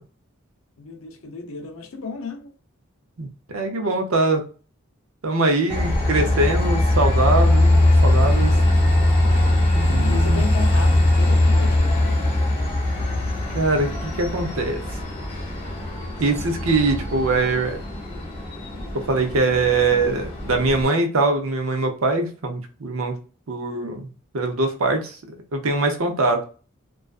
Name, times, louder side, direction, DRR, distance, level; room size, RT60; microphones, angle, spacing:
voice 1, 0.8-2.5 10.0-12.3, left 4 dB, 80° left, 0.6 m, -34 dB
voice 2, 3.2-4.4 5.2-8.5 9.7-10.4 13.5-14.8 16.2-17.8 18.9-23.1 23.5-24.1 24.3-25.2 25.5-26.4, right 2 dB, 85° right, 0.6 m, -22 dB
Train, 5.7-20.8, left 1 dB, 25° left, 0.8 m, -21 dB
2.4 x 2.2 x 2.3 m
head